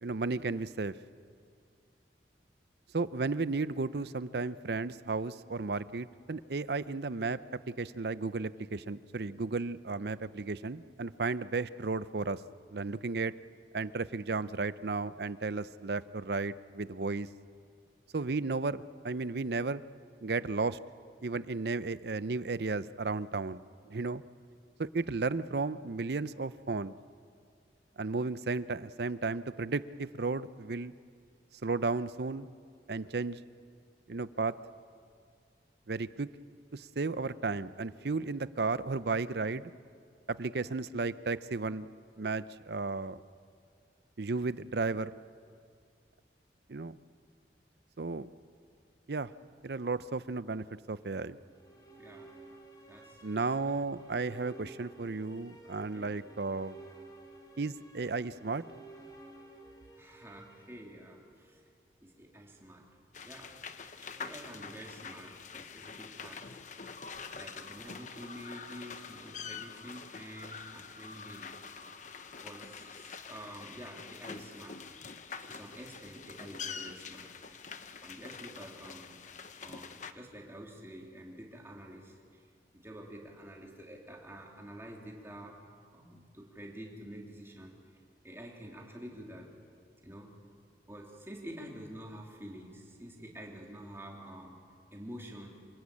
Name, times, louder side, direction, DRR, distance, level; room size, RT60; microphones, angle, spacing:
voice 1, 0.0-0.9 2.9-7.4 7.7-12.4 12.7-13.3 13.7-17.3 18.1-19.8 20.2-20.8 21.2-24.2 24.9-26.9 28.0-30.9 31.6-32.5 32.9-33.4 34.1-34.5 35.9-36.3 36.7-39.7 40.3-41.9 42.2-43.2 44.2-45.1 46.7-47.0 48.0-48.3 49.1-49.3 49.6-51.4 53.2-56.8 57.6-58.6, right 3 dB, 60° right, 15 dB, 0.6 m, -34 dB
sound 1, 51.4-61.6, right 3 dB, 20° left, 3.0 m, -53 dB
voice 2, 52.0-52.3 52.9-53.5 55.9-56.1 60.0-61.6 62.0-62.9 63.2-63.6 64.0-66.6 67.3-71.7 72.0-72.1 72.4-74.8 75.4-77.3 78.0-79.2 79.6-82.5 82.7-85.6 85.9-89.5 90.0-90.4 90.9-94.6 94.9-95.5, equal, 15° right, -1 dB, 3.3 m, -48 dB
sound 2, 63.1-80.1, left 5 dB, 45° left, 1.0 m, -45 dB
27.0 x 19.0 x 8.6 m, 2.2 s
head